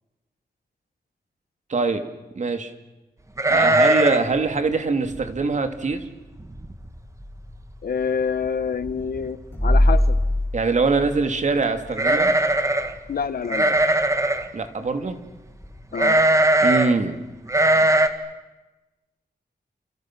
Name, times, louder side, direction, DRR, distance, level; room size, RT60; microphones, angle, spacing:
voice 1, 1.7-2.0 2.4-2.7 3.5-6.0 10.5-12.3 14.5-15.2 16.6-17.1, right 4 dB, 50° right, 7 dB, 2.6 m, -23 dB
sound 1, 3.4-4.3 4.6-4.7 5.2-5.4 6.0-6.1 6.4-6.9 7.2-7.3 8.4-8.5 8.8-9.3 11.9-12.9 13.5-14.5 16.0-16.9 17.5-18.1, right 1 dB, 20° right, 1.8 m, -19 dB
sound 2, 6.7-8.0 9.4-12.0 12.5-12.6 15.6-15.8, left 1 dB, 15° left, 4.6 m, -22 dB
voice 2, 7.8-10.2 13.1-13.8 15.9-16.2, left 6 dB, 70° left, 13 dB, 1.4 m, -27 dB
30.0 x 29.0 x 6.2 m, 1.1 s
wide cardioid pair, 155°, 16 cm